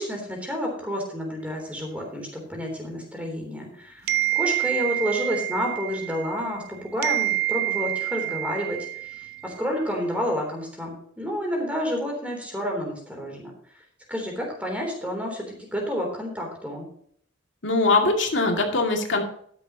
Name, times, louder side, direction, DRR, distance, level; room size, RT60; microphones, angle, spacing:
voice 1, 0.0-4.1 4.3-13.5 14.1-16.8, equal, 5° right, 1 dB, 3.4 m, -30 dB
sound 1, 4.1-6.7 7.0-9.6, right 15 dB, 50° right, 0.5 m, -27 dB
voice 2, 17.6-19.2, left 3 dB, 65° left, 1 dB, 2.4 m, -21 dB
13.0 x 10.5 x 3.0 m, 0.63 s
head